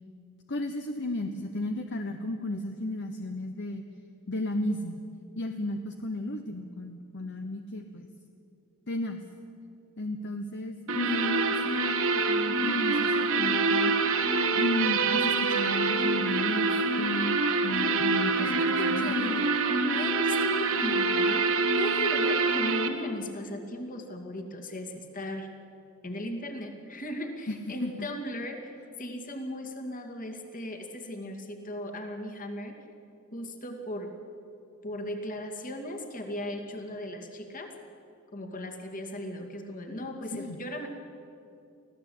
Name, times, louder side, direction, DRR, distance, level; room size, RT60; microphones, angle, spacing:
voice 1, 0.5-3.8 4.3-5.0 5.4-8.1 8.9-9.2 10.0-11.7 12.1-14.0 14.5-19.3 27.5-28.1 40.3-40.6, left 1 dB, 55° left, 6 dB, 1.0 m, -34 dB
sound 1, 10.9-22.9, right 3 dB, 65° right, 1.6 m, -26 dB
voice 2, 18.4-21.5 21.8-25.5 26.0-32.7 33.3-34.1 34.8-37.7 38.3-40.9, left 1 dB, 40° left, 4 dB, 2.4 m, -37 dB
24.5 x 16.0 x 8.6 m, 2.6 s
head